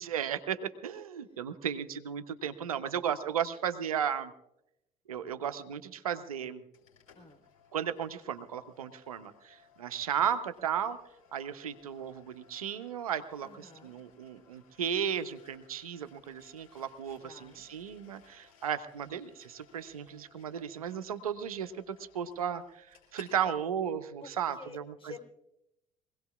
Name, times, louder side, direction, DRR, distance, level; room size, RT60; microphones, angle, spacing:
voice 1, 0.0-4.3 5.1-6.6 7.7-11.0 11.3-22.9 23.1-24.8, right 8 dB, 85° right, 11 dB, 0.8 m, -35 dB
sound 1, 6.7-23.4, left 7 dB, 85° left, 4.0 m, -62 dB
voice 2, 7.1-7.5 13.4-14.0 17.2-17.7 24.2-25.2, left 4 dB, 30° left, 5 dB, 3.8 m, -50 dB
24.0 x 17.5 x 2.4 m, 0.84 s
hypercardioid pair, 55°, 18 cm